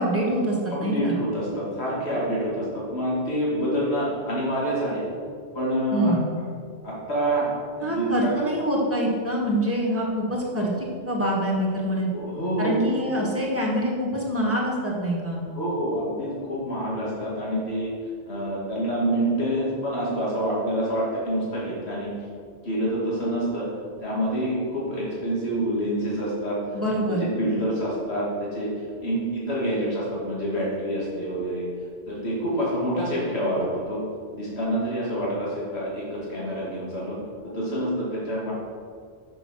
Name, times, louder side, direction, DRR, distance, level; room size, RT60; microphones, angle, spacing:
voice 1, 0.0-1.2 5.9-6.3 7.8-12.1 12.6-15.4 26.7-27.3, equal, 15° right, -3 dB, 1.8 m, -25 dB
voice 2, 0.7-5.0 5.5-6.1 6.8-7.5 7.8-8.3 12.1-12.7 15.5-17.9 18.3-22.1 22.6-23.7 24.0-26.6 27.1-28.7 29.0-31.7 32.1-34.0 34.3-37.2 37.5-38.5, right 1 dB, 85° left, -6 dB, 2.5 m, -27 dB
6.8 x 6.7 x 6.3 m, 2.2 s
omnidirectional pair, 1.1 m